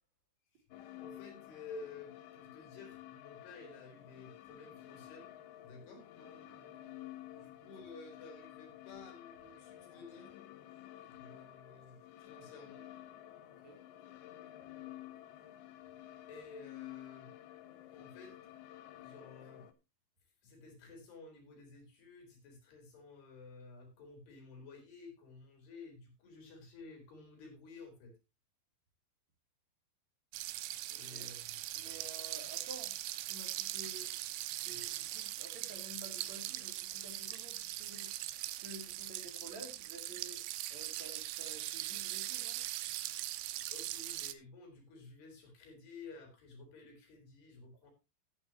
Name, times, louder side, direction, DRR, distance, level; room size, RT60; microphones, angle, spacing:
sound 1, 0.7-19.7, left 14 dB, 85° left, 3.4 m, -52 dB
voice 1, 1.0-5.3 5.6-6.1 7.3-10.3 11.1-12.9 16.3-17.3 17.9-18.4 18.9-19.7 20.4-28.1 30.9-31.5 31.8-32.1 34.7-34.8 43.7-47.9, left 3 dB, 70° left, 5.9 m, -53 dB
voice 2, 6.2-7.0 7.4-7.5 13.5-13.8 30.9-31.3 31.7-33.0 33.2-34.1 34.6-38.1 38.6-40.4 40.7-42.6 47.8-47.9, right 1 dB, 45° right, 3.9 m, -52 dB
sound 2, 30.3-44.3, right 15 dB, 90° right, 2.9 m, -41 dB
15.0 x 9.2 x 2.9 m
omnidirectional pair, 4.9 m